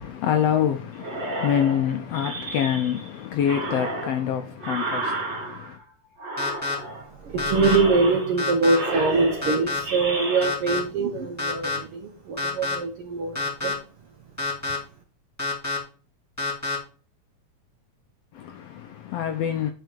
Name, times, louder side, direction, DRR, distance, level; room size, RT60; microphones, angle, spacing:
voice 1, 0.0-5.8 18.3-19.7, left 9 dB, 75° left, 1.5 m, -26 dB
sound 1, 1.0-3.1 3.4-5.8 6.2-7.1 7.5-8.4 8.7-10.5, right 2 dB, 25° right, 1.8 m, -32 dB
sound 2, 6.4-6.7 7.4-7.8 8.4-8.8 9.4-9.8 10.4-10.8 11.4-11.8 12.4-12.7 13.3-13.7 14.4-14.8 15.4-15.8 16.4-16.8, left 3 dB, 5° left, 1.8 m, -27 dB
voice 2, 6.8-13.8, right 3 dB, 65° right, 1.4 m, -24 dB
8.0 x 4.7 x 5.1 m
omnidirectional pair, 3.5 m